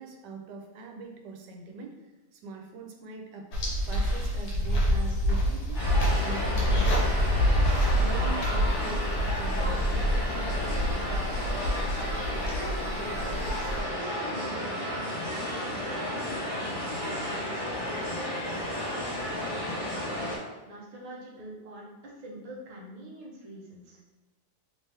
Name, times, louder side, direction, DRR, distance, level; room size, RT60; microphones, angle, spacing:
voice 1, 0.0-2.0 2.3-3.5 3.9-5.9 6.2-11.0 11.8-11.9, right 3 dB, 90° right, 3 dB, 1.2 m, -42 dB
sound 1, 3.5-13.8, equal, 75° left, 1.4 m, -27 dB
sound 2, 5.7-20.4, left 1 dB, 35° left, 1.1 m, -33 dB
voice 2, 12.2-13.5 13.9-16.6 17.2-20.2 20.7-24.0, right 1 dB, 40° right, -3 dB, 0.6 m, -45 dB
3.3 x 3.2 x 3.2 m, 1.1 s
omnidirectional pair, 1.8 m